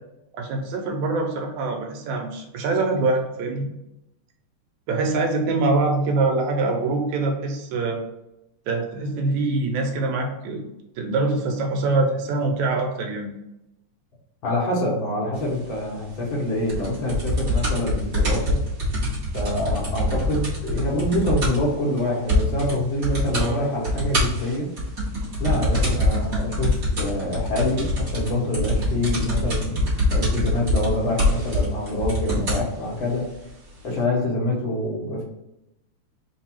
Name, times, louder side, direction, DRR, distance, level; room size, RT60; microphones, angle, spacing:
voice 1, 0.3-3.7 4.9-8.0 8.7-10.7 11.0-13.3 23.3-23.6, right 3 dB, 80° right, 2 dB, 2.1 m, -24 dB
voice 2, 14.4-18.6 19.3-24.7 25.4-33.2 33.8-35.2, left 1 dB, 60° left, -3 dB, 1.4 m, -26 dB
sound 1, 16.7-21.7 22.0-22.1 22.3-22.7 23.0-23.5 23.8-32.7 33.5-33.6, left 1 dB, 40° right, 1.4 m, -24 dB
4.7 x 2.3 x 4.3 m, 0.89 s
omnidirectional pair, 3.4 m